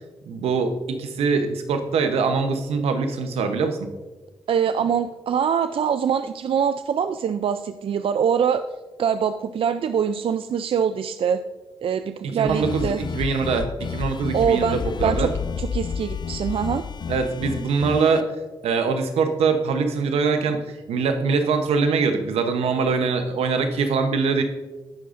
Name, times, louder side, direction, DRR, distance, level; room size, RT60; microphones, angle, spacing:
voice 1, 0.3-3.9 12.2-15.3 17.1-18.3 18.6-24.4, right 4 dB, 85° right, 7 dB, 0.9 m, -23 dB
voice 2, 4.5-8.6 9.0-11.4 11.8-13.0 14.3-15.3 15.6-16.8, right 7 dB, 65° right, 10 dB, 0.4 m, -23 dB
sound 1, 12.5-18.2, left 6 dB, 45° left, 0.4 m, -30 dB
16.5 x 6.3 x 2.5 m, 1.2 s
supercardioid pair, 50°, 10 cm